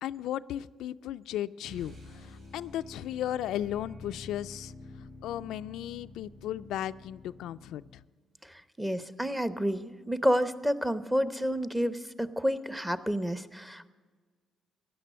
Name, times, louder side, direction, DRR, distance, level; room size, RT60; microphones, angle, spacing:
voice 1, 0.0-1.9 2.2-4.7 5.2-7.8, left 12 dB, 85° left, 12 dB, 0.3 m, -35 dB
sound 1, 1.6-8.1, left 2 dB, 75° right, 6.3 m, -49 dB
voice 2, 8.4-13.9, equal, 5° right, 13 dB, 0.8 m, -30 dB
15.5 x 10.5 x 7.5 m, 1.5 s
cardioid pair, 90°, 0 cm